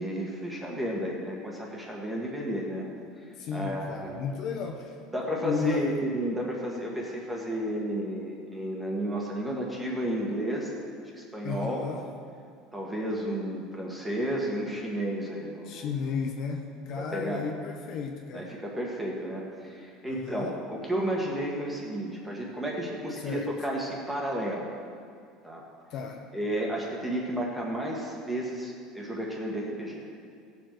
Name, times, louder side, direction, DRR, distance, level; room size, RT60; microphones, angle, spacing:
voice 1, 0.0-2.9 3.5-4.2 5.1-10.7 11.1-11.9 12.7-16.0 17.0-17.5 18.3-24.7 25.4-25.6 26.3-30.0, right 1 dB, 5° right, -2 dB, 1.5 m, -32 dB
voice 2, 3.4-5.0 5.4-5.9 11.4-12.1 15.7-18.5 20.0-20.5 23.2-23.5 25.9-26.2, left 5 dB, 45° left, 2 dB, 0.9 m, -33 dB
17.0 x 7.3 x 4.6 m, 2.3 s
cardioid pair, 175°, 0 cm